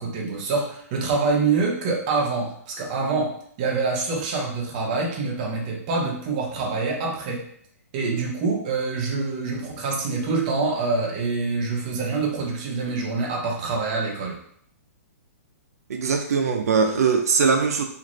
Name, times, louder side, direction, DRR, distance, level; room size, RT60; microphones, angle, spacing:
voice 1, 0.0-7.4 7.9-14.4, right 4 dB, 30° right, -1 dB, 0.6 m, -26 dB
voice 2, 15.9-17.8, right 5 dB, 75° right, 4 dB, 0.5 m, -21 dB
3.0 x 2.5 x 2.5 m, 0.65 s
hypercardioid pair, 170°, 8 cm